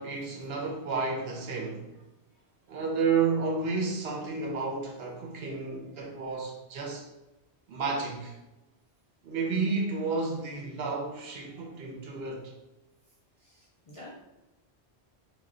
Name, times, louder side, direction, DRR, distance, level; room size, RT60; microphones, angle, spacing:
voice 1, 0.0-1.9 2.7-7.0 7.7-8.4 9.2-12.5, right 4 dB, 70° right, 0.8 m, -31 dB
voice 2, 13.4-14.1, left 1 dB, 50° left, 0.4 m, -49 dB
2.2 x 2.1 x 3.6 m
omnidirectional pair, 1.1 m